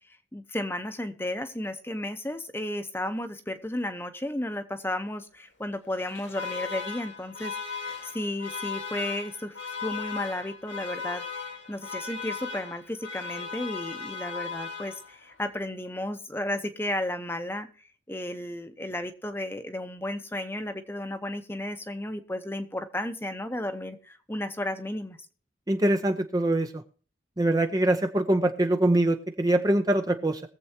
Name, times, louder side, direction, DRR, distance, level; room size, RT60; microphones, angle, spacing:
voice 1, 0.3-17.7 18.1-25.2, left 1 dB, 10° left, 9 dB, 0.9 m, -33 dB
Alarm, 5.9-15.3, left 5 dB, 80° left, 2.4 m, -37 dB
voice 2, 25.7-26.8 27.4-30.4, right 1 dB, 20° right, 6 dB, 0.7 m, -23 dB
22.0 x 7.7 x 2.9 m, 0.42 s
head